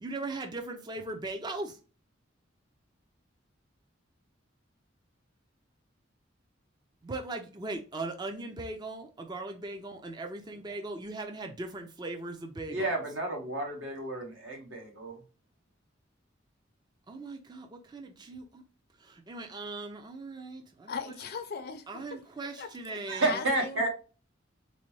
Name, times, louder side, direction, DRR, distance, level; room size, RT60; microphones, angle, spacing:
voice 1, 0.0-1.8 7.0-12.9 17.1-18.6 19.0-21.2 21.9-23.4, right 2 dB, 20° right, 0.4 m, -39 dB
voice 2, 12.7-15.2 23.1-23.9, right 2 dB, 75° right, 1.3 m, -31 dB
voice 3, 20.9-21.9 22.6-23.0 23.2-23.9, left 5 dB, 55° left, 0.5 m, -38 dB
4.0 x 2.1 x 3.1 m
head